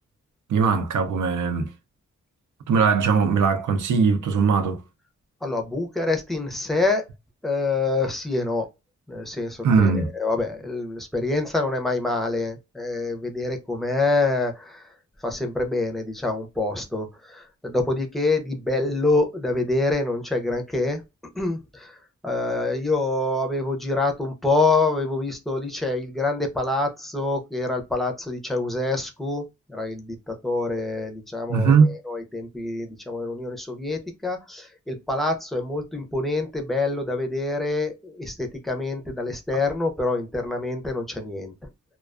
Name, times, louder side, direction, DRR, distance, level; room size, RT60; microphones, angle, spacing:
voice 1, 0.5-1.7 2.7-4.8 9.6-10.1 31.5-31.9, right 5 dB, 85° right, 0.5 m, -20 dB
voice 2, 5.4-7.0 7.4-8.7 9.1-14.9 15.2-21.0 21.3-41.7, left 2 dB, ahead, 0.5 m, -26 dB
2.3 x 2.2 x 2.3 m
wide cardioid pair, 120°, 30 cm